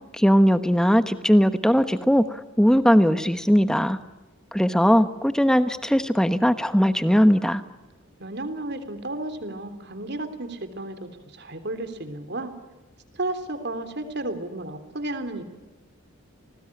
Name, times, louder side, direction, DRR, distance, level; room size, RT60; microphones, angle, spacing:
voice 1, 0.1-2.2 2.6-4.0 4.5-7.6, equal, 5° left, 11 dB, 1.2 m, -19 dB
voice 2, 8.2-12.5 13.1-15.4, right 2 dB, 50° right, 9 dB, 3.4 m, -33 dB
29.5 x 19.5 x 9.9 m, 1.2 s
head